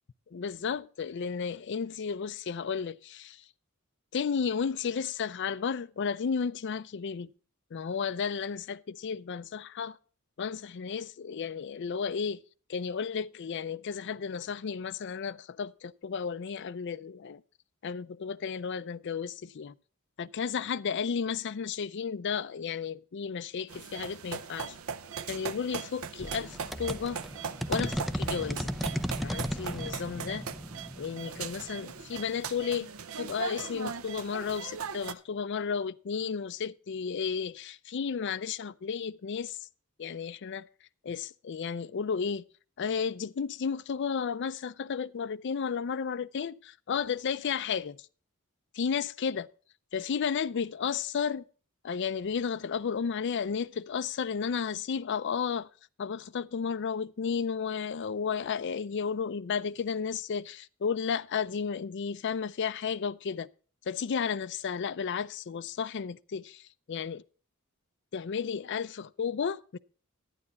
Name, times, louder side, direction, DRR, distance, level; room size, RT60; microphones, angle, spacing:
voice 1, 0.3-3.4 4.1-7.3 7.7-10.0 10.4-12.4 12.7-17.4 17.8-19.7 20.2-24.8 25.3-27.2 27.7-28.7 29.2-30.5 31.0-32.9 33.2-39.6 40.0-40.6 41.0-42.4 42.8-48.0 48.7-49.5 49.9-51.4 51.8-55.7 56.0-63.5 63.9-66.6 66.9-67.2 68.1-69.8, left 6 dB, 55° left, 0.4 m, -33 dB
sound 1, 23.7-35.1, right 6 dB, 75° right, 0.7 m, -39 dB
sound 2, 26.2-32.6, equal, ahead, 0.5 m, -36 dB
11.5 x 9.7 x 4.0 m
head